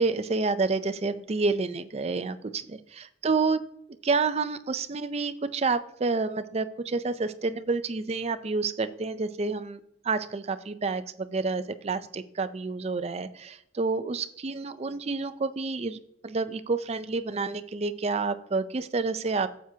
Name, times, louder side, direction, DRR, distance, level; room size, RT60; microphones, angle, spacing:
voice 1, 0.0-3.6 4.0-9.8 10.0-19.5, right 4 dB, 35° right, 11 dB, 0.4 m, -29 dB
9.2 x 7.4 x 2.8 m, 0.75 s
head